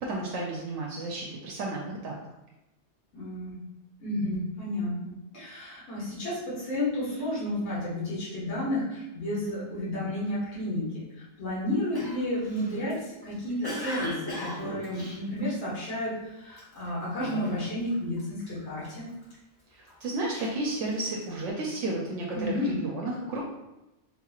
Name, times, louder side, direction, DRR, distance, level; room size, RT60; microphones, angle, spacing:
voice 1, 0.0-2.2 19.7-23.5, right 2 dB, 80° right, -2 dB, 0.9 m, -32 dB
voice 2, 3.1-3.6 4.0-13.0 13.2-19.1 22.3-22.8, left 1 dB, 60° left, -9 dB, 1.6 m, -32 dB
Cough, 11.9-16.0 16.5-16.8 17.2-17.9 18.2-19.3 19.9-21.4, left 1 dB, 25° left, 0.6 m, -38 dB
3.8 x 2.9 x 2.3 m, 0.94 s
omnidirectional pair, 1.3 m